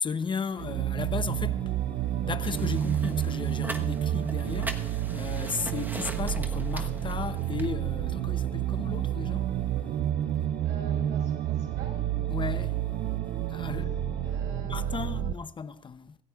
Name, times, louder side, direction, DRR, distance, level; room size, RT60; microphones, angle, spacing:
voice 1, 0.0-1.7 2.0-9.5 12.3-12.8 13.5-14.0 14.6-16.2, left 5 dB, 30° left, 0.6 m, -35 dB
sound 1, 0.5-14.4, left 1 dB, 5° left, 4.1 m, -50 dB
sound 2, 0.6-15.3, right 11 dB, 65° right, 0.5 m, -30 dB
sound 3, 2.4-7.7, right 1 dB, 10° right, 1.1 m, -41 dB
voice 2, 10.6-12.0 14.2-15.2, right 4 dB, 80° right, 5.7 m, -46 dB
25.5 x 14.0 x 2.4 m
cardioid pair, 110°, 17 cm